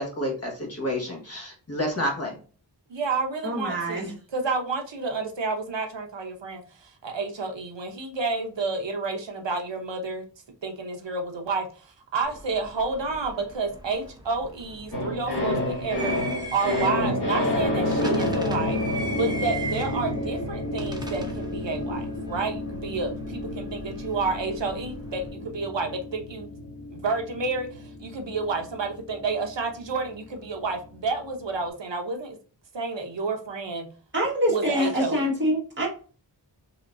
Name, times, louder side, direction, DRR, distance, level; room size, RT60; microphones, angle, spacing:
voice 1, 0.0-2.3, left 1 dB, 35° left, 0 dB, 1.5 m, -29 dB
voice 2, 2.9-10.2 10.6-18.8 19.1-26.5 26.9-32.4 32.7-33.9 34.5-35.3, right 4 dB, 80° right, 4 dB, 0.9 m, -30 dB
voice 3, 3.4-4.1 34.1-35.9, equal, 25° right, -4 dB, 1.7 m, -25 dB
sound 1, 12.2-25.3, right 2 dB, 10° right, 0.7 m, -40 dB
sound 2, 14.9-31.2 31.5-31.6, left 1 dB, 65° left, 1.5 m, -30 dB
4.0 x 3.0 x 2.6 m, 0.38 s
wide cardioid pair, 65°, 43 cm